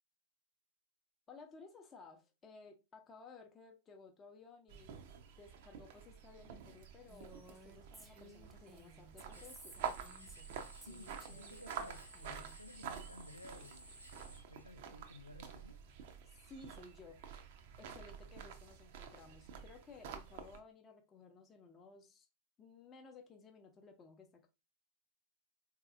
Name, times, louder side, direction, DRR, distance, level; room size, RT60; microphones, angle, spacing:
voice 1, 1.3-4.9 5.4-9.8 16.2-17.3 17.8-22.3 22.6-24.5, left 4 dB, 25° left, 0.6 m, -57 dB
sound 1, 4.7-20.6, right 7 dB, 50° right, 0.5 m, -49 dB
Female speech woman speaking, 7.1-10.5 10.8-12.6, right 1 dB, 10° right, 0.7 m, -59 dB
sound 2, 9.3-14.4, equal, 85° right, 1.0 m, -57 dB
voice 2, 10.9-13.9 14.2-15.8, left 1 dB, 90° left, 0.3 m, -55 dB
3.9 x 2.8 x 2.5 m
figure-of-eight pair, 90°, 0 cm